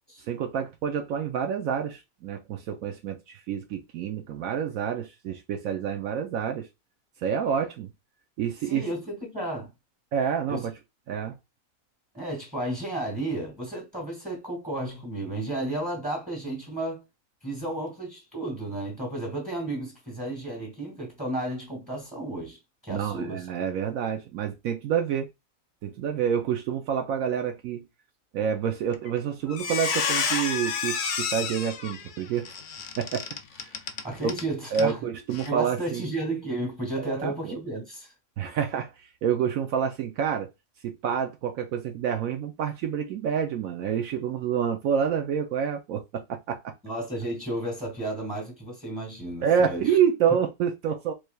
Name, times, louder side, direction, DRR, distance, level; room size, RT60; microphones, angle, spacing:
voice 1, 0.3-6.7 7.2-7.9 8.4-8.9 10.1-10.7 11.1-11.4 22.9-25.3 25.8-27.8 28.3-32.5 33.0-33.3 33.5-33.7 34.2-34.3 34.7-36.1 37.0-37.6 38.4-40.5 40.8-46.7 49.4-51.1, right 8 dB, 70° right, 1.0 m, -28 dB
voice 2, 8.7-9.7 10.5-10.7 12.1-17.0 17.4-22.6 22.8-23.4 34.0-35.0 35.4-38.1 46.8-49.9, right 1 dB, 5° right, 1.9 m, -33 dB
Squeak, 28.9-29.2 29.5-34.4 34.7-34.9 35.3-35.5, left 6 dB, 70° left, 0.4 m, -30 dB
4.6 x 3.2 x 2.2 m
omnidirectional pair, 1.5 m